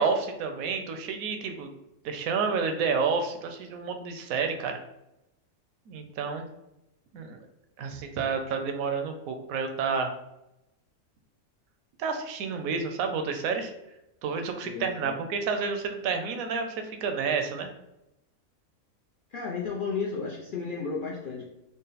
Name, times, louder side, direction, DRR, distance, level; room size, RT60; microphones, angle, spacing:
voice 1, 0.0-1.7 2.0-4.8 5.9-6.4 7.1-7.4 7.8-10.1 12.0-13.7 14.2-17.7, right 5 dB, 80° right, 5 dB, 1.0 m, -30 dB
voice 2, 14.6-15.2 19.3-21.5, left 5 dB, 55° left, -4 dB, 0.5 m, -33 dB
3.7 x 2.1 x 3.9 m, 0.89 s
omnidirectional pair, 1.5 m